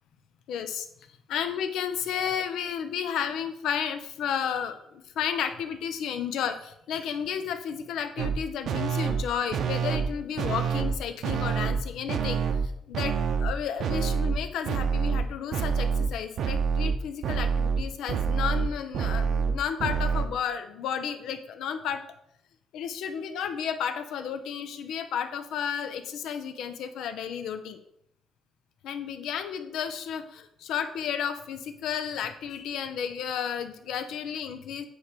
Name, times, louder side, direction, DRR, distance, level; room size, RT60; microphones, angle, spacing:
voice 1, 0.5-0.9 1.3-13.1 13.4-22.0 22.7-27.8 28.8-34.8, left 8 dB, 75° left, 9 dB, 0.8 m, -32 dB
sound 1, 8.2-8.4 8.7-9.2 9.5-10.1 10.4-11.0 11.2-11.8 12.1-12.7 12.9-13.5 13.8-14.4 14.7-15.3 15.5-16.1 16.4-20.3, right 6 dB, 60° right, 0.8 m, -27 dB
9.4 x 3.3 x 6.7 m, 0.73 s
cardioid pair, 130°, 0 cm